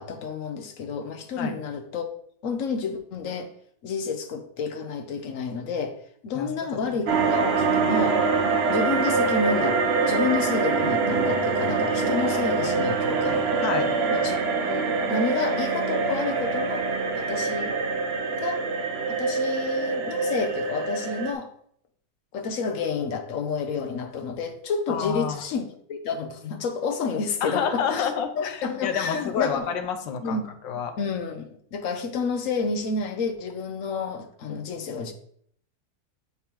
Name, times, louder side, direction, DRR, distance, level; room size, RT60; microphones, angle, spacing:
voice 1, 0.0-2.1 2.4-3.5 3.8-6.0 6.2-8.2 8.7-13.4 14.1-16.8 17.1-17.8 18.4-18.7 19.1-21.5 22.3-29.7 30.2-30.5 31.0-35.1, left 5 dB, 65° left, 5 dB, 0.8 m, -30 dB
sound 1, 7.1-21.3, right 4 dB, 80° right, 0.5 m, -24 dB
voice 2, 13.6-13.9 24.9-25.4 27.4-31.0, left 7 dB, 85° left, 6 dB, 1.4 m, -28 dB
9.3 x 3.5 x 2.9 m, 0.63 s
omnidirectional pair, 2.0 m